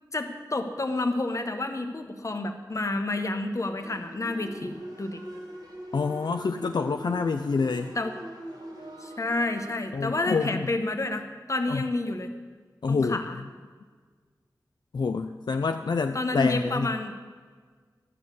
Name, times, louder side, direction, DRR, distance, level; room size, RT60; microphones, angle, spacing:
voice 1, 0.1-5.2 7.9-8.1 9.0-12.3 12.9-13.4 16.1-17.1, left 2 dB, 45° left, 6 dB, 1.1 m, -29 dB
sound 1, 3.8-9.7, right 1 dB, 75° right, 2.7 m, -41 dB
voice 2, 5.9-7.9 9.9-10.7 11.7-11.8 12.8-13.2 14.9-16.9, left 4 dB, 70° left, 6 dB, 0.4 m, -27 dB
12.5 x 6.4 x 8.2 m, 1.5 s
wide cardioid pair, 85°, 7 cm